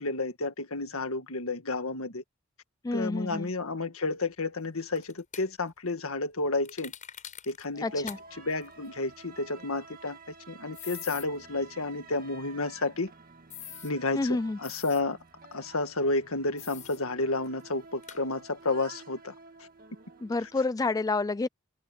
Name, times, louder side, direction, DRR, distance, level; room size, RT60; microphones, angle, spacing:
voice 1, 0.0-2.2 2.9-6.9 7.5-8.1 8.4-13.1 13.8-15.2 15.5-19.3, left 2 dB, 75° left, 1.8 m, -31 dB
voice 2, 2.8-3.5 7.8-8.2 14.1-14.6 20.2-21.5, left 3 dB, 15° left, 0.3 m, -29 dB
sound 1, 5.0-5.5 6.7-7.7 8.1-8.2 8.5-8.6 10.7-11.3 13.5-13.9 14.6-15.0 16.6-17.0 17.4-17.5 18.0-18.2, left 9 dB, 35° left, 6.5 m, -43 dB
sound 2, 7.7-20.6, right 4 dB, 45° right, 2.0 m, -51 dB
head